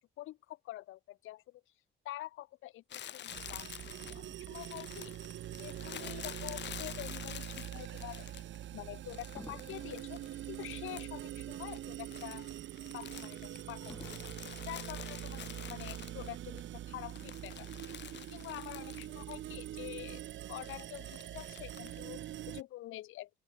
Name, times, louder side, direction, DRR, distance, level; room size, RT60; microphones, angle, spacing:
voice 1, 0.0-1.6 2.1-5.1 5.5-8.3 8.7-10.2 10.5-12.5 12.8-14.3 14.6-17.9 18.3-20.2 20.5-23.4, left 15 dB, 90° left, 3.5 m, -47 dB
Crumpling crinkling, 2.9-8.6 9.1-11.3 11.5-16.6 17.0-19.4 19.7-19.8 20.6-22.0, left 10 dB, 65° left, 1.4 m, -48 dB
sound 1, 3.3-22.6, right 12 dB, 70° right, 1.1 m, -44 dB
Fireworks, 4.0-6.6 7.3-7.5 9.4-11.9 12.2-12.3 13.9-15.8 16.5-16.6, left 2 dB, 10° left, 6.6 m, -57 dB
open air
cardioid pair, 90°, 20 cm